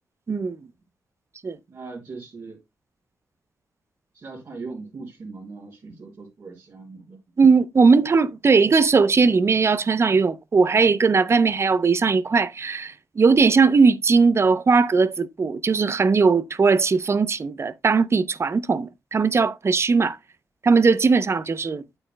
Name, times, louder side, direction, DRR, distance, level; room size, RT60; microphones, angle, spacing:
voice 1, 1.7-2.6 4.1-7.2, right 3 dB, 60° right, 3.4 m, -39 dB
voice 2, 7.4-20.2 20.6-21.8, right 4 dB, 40° right, 0.6 m, -19 dB
8.8 x 8.6 x 2.2 m
cardioid pair, 85°, 7 cm